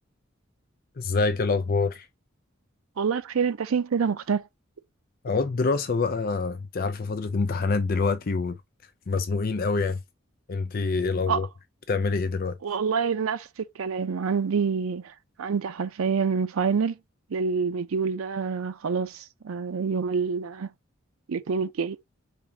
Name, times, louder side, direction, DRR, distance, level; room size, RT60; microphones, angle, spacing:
voice 1, 1.0-2.1 5.2-8.6 9.1-10.0 10.5-11.5 11.9-12.6, left 4 dB, 45° left, 0.5 m, -26 dB
voice 2, 3.0-4.5 11.3-11.4 12.6-17.0 17.3-20.7 21.3-22.0, right 5 dB, 90° right, 0.5 m, -27 dB
4.9 x 3.5 x 2.8 m
head